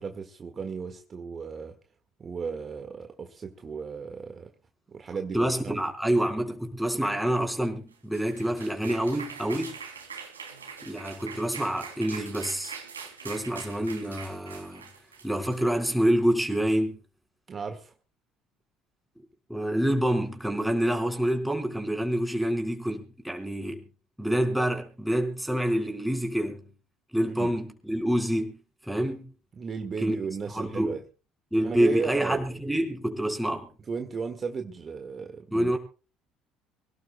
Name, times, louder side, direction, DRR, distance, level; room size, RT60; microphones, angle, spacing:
voice 1, 0.0-1.8 2.2-4.5 4.9-5.8 17.5-17.9 27.3-27.5 29.5-31.0 31.6-32.4 33.9-35.7, right 5 dB, 35° right, 1.7 m, -35 dB
voice 2, 5.3-9.8 10.8-12.7 13.2-14.8 15.2-17.0 19.5-23.8 24.2-26.7 27.1-28.6 28.9-29.3 30.0-30.1 30.5-30.9 31.5-33.7 35.5-35.8, right 1 dB, 5° right, 4.6 m, -27 dB
sound 1, 7.9-16.2, right 6 dB, 90° right, 3.0 m, -43 dB
25.5 x 17.5 x 2.2 m
hypercardioid pair, 60°, 0 cm